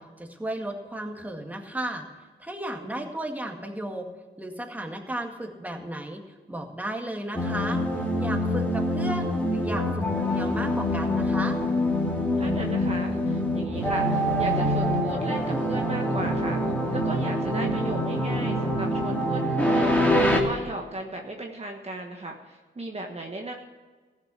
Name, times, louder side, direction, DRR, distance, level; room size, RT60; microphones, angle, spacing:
voice 1, 0.0-2.0 2.4-4.1 4.4-6.2 6.5-7.8 8.2-11.6, right 1 dB, 10° right, 2 dB, 2.0 m, -34 dB
sound 1, 7.3-20.4, equal, 10° left, 2.4 m, -25 dB
voice 2, 12.4-23.5, right 2 dB, 30° right, 2 dB, 1.3 m, -36 dB
15.0 x 6.9 x 8.5 m, 1.4 s
cardioid pair, 80°, 20 cm